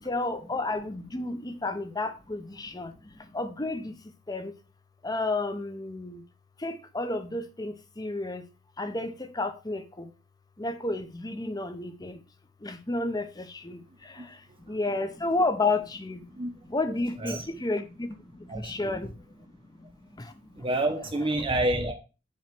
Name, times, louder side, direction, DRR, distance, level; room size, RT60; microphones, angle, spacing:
voice 1, 0.0-2.9 3.3-3.9 4.3-4.5 5.0-6.2 6.6-8.4 8.8-10.1 10.6-12.2 12.6-13.8 14.7-16.2 16.7-18.1 18.6-19.1, left 2 dB, 20° left, 0.7 m, -31 dB
voice 2, 16.9-17.5 18.5-19.0 20.6-21.9, right 1 dB, 25° right, 0.8 m, -29 dB
7.3 x 3.1 x 5.9 m
head